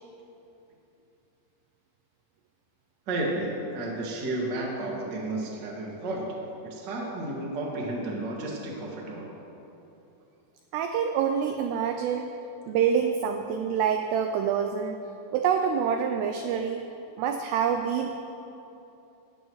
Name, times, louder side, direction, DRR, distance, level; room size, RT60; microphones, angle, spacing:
voice 1, 3.1-6.3 6.6-9.3, right 2 dB, 50° right, -3 dB, 1.2 m, -32 dB
voice 2, 10.7-12.3 12.7-15.0 15.3-16.8 17.2-18.1, right 7 dB, 90° right, 5 dB, 2.3 m, -26 dB
18.0 x 14.5 x 3.2 m, 2.9 s
omnidirectional pair, 5.5 m